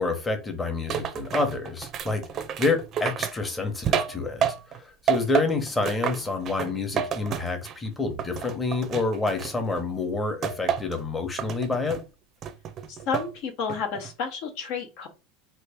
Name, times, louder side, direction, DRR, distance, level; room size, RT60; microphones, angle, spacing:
voice 1, 0.0-4.4 4.7-12.0, left 3 dB, 15° left, 1.0 m, -28 dB
sound 1, 0.9-4.8 5.1-7.9 8.2-9.8 10.4-11.0 11.4-12.0 12.4-13.3 13.7-14.1, right 8 dB, 40° right, 0.6 m, -30 dB
voice 2, 12.9-15.1, left 6 dB, 60° left, 0.9 m, -31 dB
3.2 x 2.5 x 3.5 m
hypercardioid pair, 90°, 0 cm